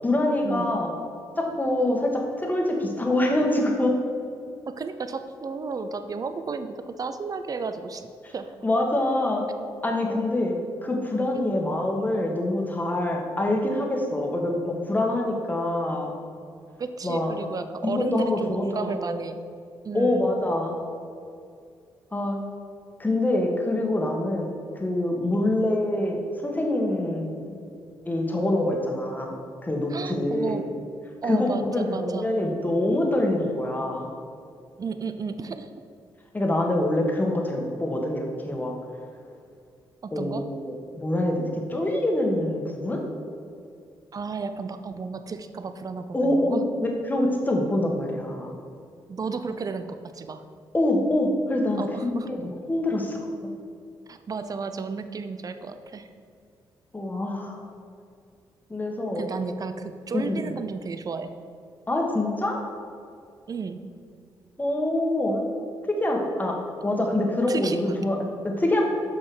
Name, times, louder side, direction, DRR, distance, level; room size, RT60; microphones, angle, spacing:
voice 1, 0.0-0.9 1.4-3.9 8.2-8.3 8.6-9.4 9.8-10.5 10.8-16.1 17.0-17.3 17.8-19.2 19.9-20.8 22.1-22.4 23.0-24.5 24.7-27.5 28.0-30.6 31.3-34.1 36.3-38.7 40.1-43.0 46.1-48.5 50.7-53.3 56.9-57.6 58.7-59.2 60.1-60.5 61.9-62.6 64.6-65.4 65.9-66.5 66.8-68.9, left 1 dB, 20° left, 0 dB, 1.6 m, -25 dB
voice 2, 4.7-8.6 10.1-10.2 11.3-11.7 16.8-19.4 19.8-20.3 25.3-25.6 29.9-30.7 31.2-32.3 34.8-35.7 40.0-40.4 44.1-46.6 49.1-50.4 51.8-52.3 54.1-56.1 59.1-61.3 63.5-63.8 67.5-68.0, right 4 dB, 40° right, 10 dB, 0.6 m, -33 dB
6.3 x 5.6 x 6.2 m, 2.3 s
cardioid pair, 70°, 9 cm